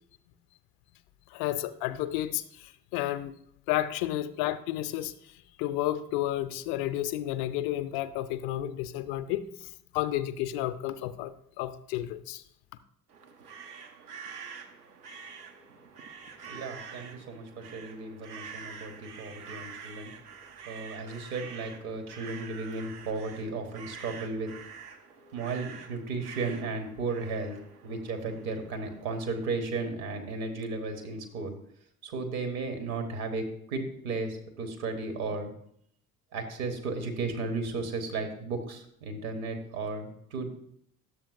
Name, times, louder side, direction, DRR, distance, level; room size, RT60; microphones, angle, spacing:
voice 1, 1.3-3.3 3.7-5.1 5.6-12.4, left 13 dB, 50° left, 12 dB, 0.5 m, -31 dB
sound 1, 13.1-29.5, right 6 dB, 80° right, 0.8 m, -47 dB
voice 2, 16.4-20.1 20.7-24.5 25.3-27.6 27.8-31.5 32.0-35.5 36.3-40.5, right 3 dB, 65° right, 6 dB, 1.4 m, -34 dB
11.0 x 7.3 x 2.6 m, 0.69 s
figure-of-eight pair, 60°, 46 cm